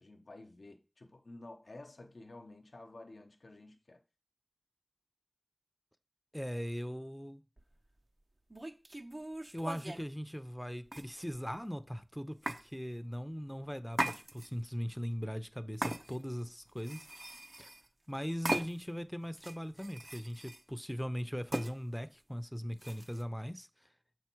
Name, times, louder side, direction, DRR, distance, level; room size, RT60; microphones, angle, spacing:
voice 1, 0.0-4.0, left 2 dB, 90° left, 0.7 m, -52 dB
voice 2, 6.3-7.4 9.5-17.1 17.6-17.7 18.1-23.7, equal, 5° left, 0.6 m, -39 dB
sound 1, 7.6-7.7 8.5-10.1 10.9-11.5 12.5-12.6 13.9-14.7 15.8-16.4 16.8-17.9 18.5-19.0 19.4-20.6 21.5-21.7 22.8-23.2, right 1 dB, 45° right, 0.6 m, -39 dB
6.9 x 4.6 x 4.5 m
wide cardioid pair, 45°, 0 cm